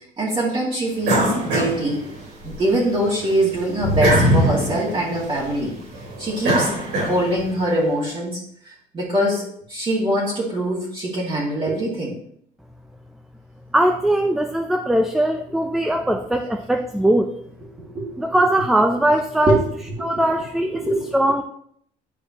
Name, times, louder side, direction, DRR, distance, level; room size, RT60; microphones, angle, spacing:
voice 1, 0.2-2.0 2.4-5.7 6.2-6.7 7.0-12.2 17.9-18.2 19.4-19.6 20.0-20.1 20.7-21.1, right 1 dB, 35° right, -6 dB, 2.2 m, -23 dB
sound 1, 1.0-2.6 3.0-7.6, right 1 dB, 90° right, 3.2 m, -22 dB
voice 2, 13.7-17.3 18.2-19.6 20.0-20.9 21.1-21.4, right 1 dB, ahead, 5 dB, 0.5 m, -20 dB
9.8 x 4.8 x 3.0 m, 0.66 s
cardioid pair, 110°, 17 cm